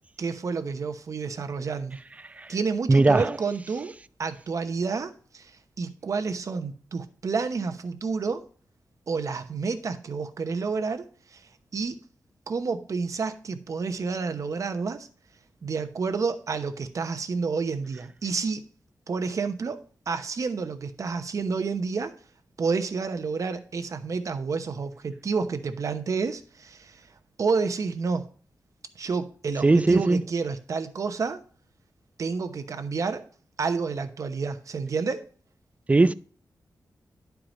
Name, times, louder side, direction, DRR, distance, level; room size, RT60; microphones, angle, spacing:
voice 1, 0.2-2.0 2.5-3.9 4.2-8.4 9.1-11.0 11.3-12.0 12.5-15.1 15.6-18.7 19.1-22.2 22.6-27.1 27.4-28.3 28.9-31.4 32.2-33.2 33.6-35.3, right 4 dB, 55° right, 0.9 m, -29 dB
voice 2, 2.9-3.4 29.6-30.2 35.9-36.1, right 3 dB, 20° right, 0.4 m, -19 dB
10.5 x 4.7 x 5.2 m
wide cardioid pair, 135°, 7 cm